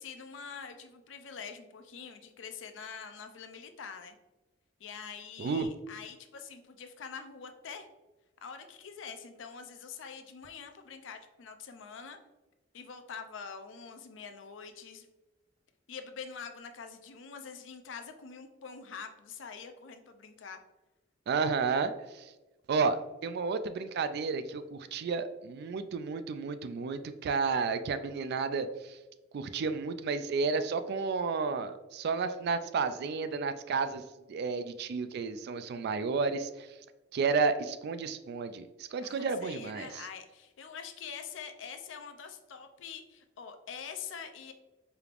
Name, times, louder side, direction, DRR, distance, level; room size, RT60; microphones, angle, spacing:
voice 1, 0.0-4.2 4.8-7.9 8.4-12.2 12.7-15.1 15.9-20.6 39.0-44.5, left 6 dB, 70° left, 7 dB, 0.5 m, -45 dB
voice 2, 21.3-22.3 22.7-29.0 29.3-34.0 34.3-36.7 37.1-40.0, right 4 dB, 60° right, 11 dB, 0.3 m, -32 dB
4.8 x 3.3 x 2.4 m, 1.1 s
head